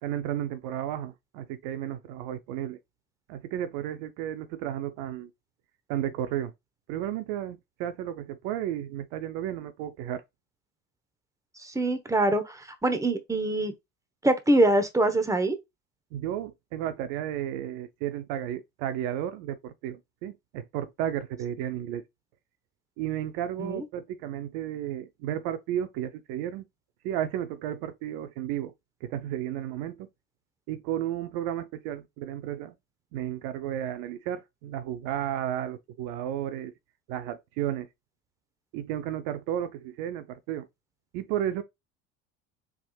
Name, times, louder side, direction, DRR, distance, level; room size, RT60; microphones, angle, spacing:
voice 1, 0.0-2.8 3.3-5.3 5.9-6.5 6.9-10.2 16.1-22.0 23.0-26.6 27.0-28.7 29.0-30.1 30.7-32.7 33.1-36.7 37.1-37.9 38.7-40.7 41.1-41.6, right 11 dB, 70° right, 0.7 m, -33 dB
voice 2, 11.5-13.7 14.2-15.6 23.6-23.8, right 1 dB, 10° right, 1.0 m, -24 dB
5.9 x 3.5 x 2.4 m
hypercardioid pair, 80°, 40 cm